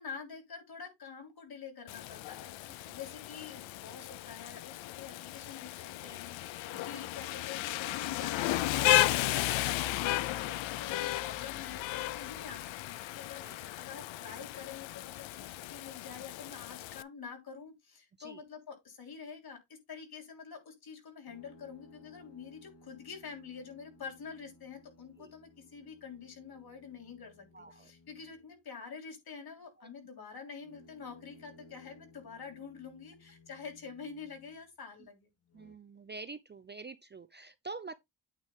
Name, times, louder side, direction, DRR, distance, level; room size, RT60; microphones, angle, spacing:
voice 1, 0.0-19.6 19.9-27.4 27.7-35.3, left 6 dB, 55° left, 3.3 m, -47 dB
Rain, 1.9-17.0, left 15 dB, 90° left, 0.6 m, -34 dB
voice 2, 6.6-6.9 13.4-13.6 18.2-18.4 25.2-25.3 27.5-27.9 29.8-29.9 35.5-37.9, right 3 dB, 25° right, 0.4 m, -47 dB
sound 1, 21.3-28.6 30.6-34.7 35.4-35.8, left 2 dB, 35° left, 1.6 m, -60 dB
9.0 x 3.3 x 5.4 m
cardioid pair, 120°, 44 cm